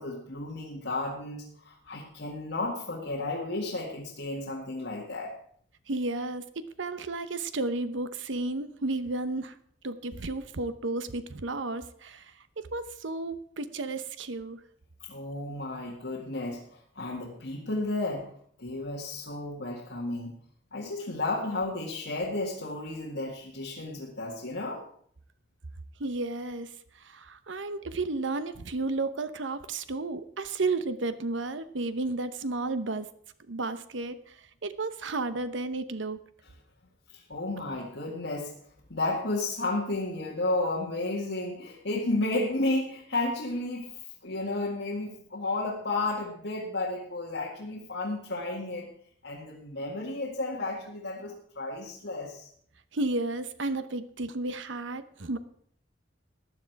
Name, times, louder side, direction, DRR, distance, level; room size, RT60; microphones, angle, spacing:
voice 1, 0.0-5.3 15.0-18.3 18.6-20.3 20.7-24.8 37.1-38.5 38.9-48.9 49.2-52.5, left 2 dB, 75° left, -4 dB, 2.0 m, -32 dB
voice 2, 5.9-9.6 9.8-14.6 26.0-33.1 33.5-36.2 52.9-55.4, right 2 dB, 90° right, 12 dB, 0.9 m, -33 dB
15.0 x 9.8 x 4.7 m, 0.64 s
head